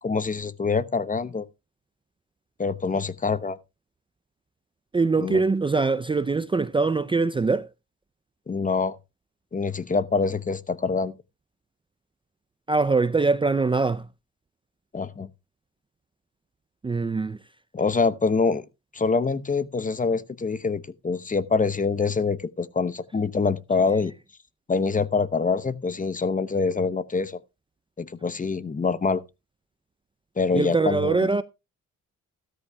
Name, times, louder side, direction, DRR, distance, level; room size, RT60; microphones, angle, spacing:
voice 1, 0.0-1.5 2.6-3.6 5.2-5.4 8.5-9.0 9.5-11.1 14.9-15.3 17.7-18.6 18.9-24.1 24.7-27.4 28.0-29.2 30.4-31.3, left 4 dB, 25° left, 0.8 m, -25 dB
voice 2, 4.9-7.7 12.7-14.1 16.8-17.4 30.5-31.4, right 4 dB, 15° right, 0.5 m, -23 dB
14.0 x 13.0 x 2.3 m
cardioid pair, 80°, 31 cm